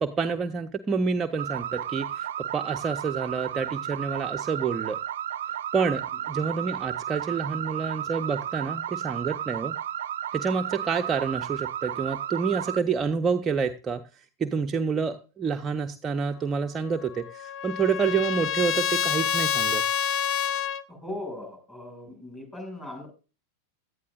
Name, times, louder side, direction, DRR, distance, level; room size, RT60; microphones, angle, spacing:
voice 1, 0.0-5.0 5.7-6.0 6.3-9.7 10.3-19.8, right 5 dB, 20° right, 5 dB, 0.7 m, -28 dB
sound 1, 1.4-12.8, right 10 dB, 60° right, 0.5 m, -33 dB
Trumpet, 16.9-20.8, left 8 dB, 40° left, 1.0 m, -27 dB
voice 2, 20.9-23.1, left 1 dB, 10° left, 3 dB, 6.2 m, -39 dB
17.0 x 11.5 x 2.5 m, 0.34 s
figure-of-eight pair, 90°, 0 cm